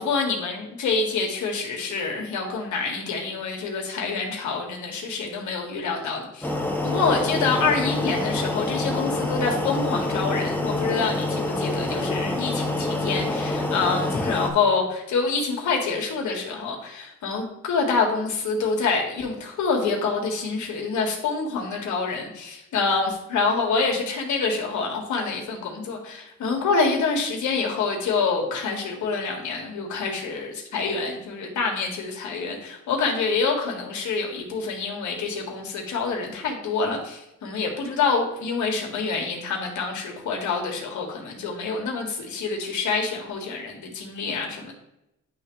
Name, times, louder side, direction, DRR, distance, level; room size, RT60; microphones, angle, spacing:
voice 1, 0.0-6.5 6.8-44.7, left 4 dB, 75° left, 2 dB, 1.7 m, -26 dB
sound 1, 6.4-14.5, left 2 dB, 5° left, 1.0 m, -26 dB
10.5 x 3.4 x 3.1 m, 0.88 s
cardioid pair, 90°, 30 cm